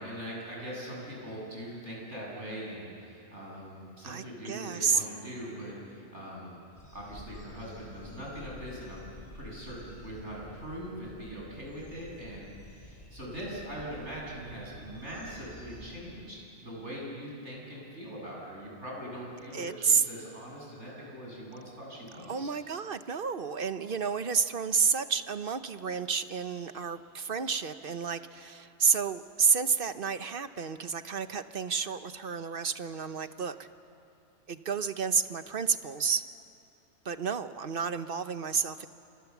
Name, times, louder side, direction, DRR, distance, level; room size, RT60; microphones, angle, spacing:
voice 1, 0.0-6.6 6.9-9.1 9.3-22.5, equal, 80° right, -4 dB, 8.3 m, -41 dB
voice 2, 4.0-5.0 19.5-20.0 22.3-33.5 34.5-36.2 37.0-38.9, right 6 dB, 55° right, 11 dB, 1.0 m, -30 dB
sound 1, 6.8-15.9, left 1 dB, 40° left, 5.7 m, -50 dB
29.0 x 28.0 x 7.2 m, 2.7 s
omnidirectional pair, 1.2 m